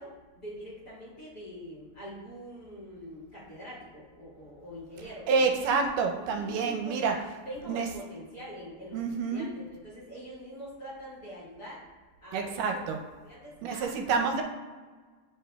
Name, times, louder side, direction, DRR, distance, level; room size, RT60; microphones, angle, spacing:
voice 1, 0.0-5.4 6.3-9.0 9.3-11.8 12.2-12.8 13.2-13.9, equal, 40° left, -9 dB, 1.5 m, -44 dB
voice 2, 5.3-7.2 7.7-7.9 8.9-9.5 12.3-13.0 13.6-14.4, right 5 dB, 85° right, 3 dB, 2.2 m, -28 dB
8.8 x 4.9 x 2.3 m, 1.4 s
omnidirectional pair, 3.8 m